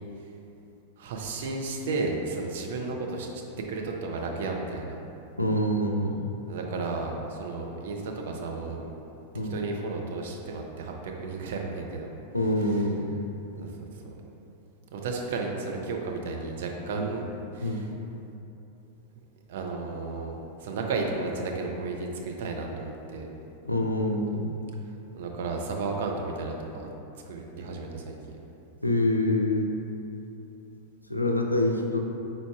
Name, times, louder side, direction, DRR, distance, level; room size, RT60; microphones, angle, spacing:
voice 1, 1.0-3.4 3.7-5.0 6.5-8.9 9.5-12.1 12.6-12.8 13.6-13.9 14.9-17.9 19.5-23.3 25.1-26.9 27.3-28.4, right 3 dB, 55° right, 1 dB, 0.4 m, -33 dB
voice 2, 5.4-6.2 9.3-9.6 12.3-13.1 17.0-17.1 17.6-17.9 23.7-24.6 28.8-29.7 31.1-32.0, left 1 dB, 85° left, 2 dB, 0.3 m, -26 dB
4.6 x 3.8 x 2.3 m, 3.0 s
figure-of-eight pair, 90°, 0 cm